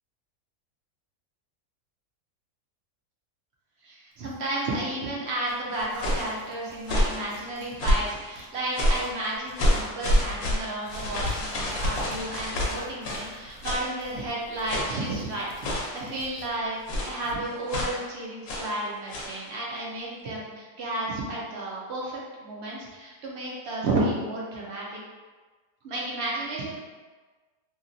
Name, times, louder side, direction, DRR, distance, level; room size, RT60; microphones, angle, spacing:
voice 1, 3.8-24.9 25.8-26.7, right 1 dB, 60° right, -5 dB, 0.7 m, -32 dB
Tearing, 4.1-7.8 8.1-17.4, right 1 dB, 80° right, 1.1 m, -48 dB
sound 1, 5.7-6.3 6.8-7.2 7.8-8.2 8.7-9.1 9.6-13.3 13.6-13.9 14.7-15.1 15.6-16.0 16.9-17.2 17.7-18.0 18.5-18.7 19.1-19.4, equal, 70° left, 1.1 m, -27 dB
2.8 x 2.8 x 2.6 m, 1.3 s
omnidirectional pair, 1.6 m